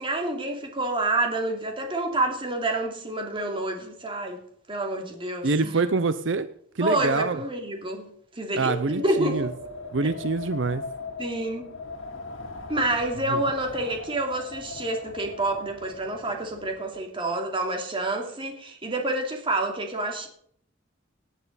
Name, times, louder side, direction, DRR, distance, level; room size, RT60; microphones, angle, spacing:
voice 1, 0.0-4.4 4.7-5.8 6.8-9.5 10.0-10.2 11.2-11.7 12.7-20.3, right 2 dB, 25° right, 2.8 m, -28 dB
voice 2, 5.4-6.5 6.8-7.4 8.5-9.5 9.9-10.8 13.3-13.4, right 3 dB, 65° right, 0.7 m, -25 dB
Wind, 8.6-17.0, left 3 dB, 75° left, 2.7 m, -40 dB
18.0 x 9.5 x 4.1 m
head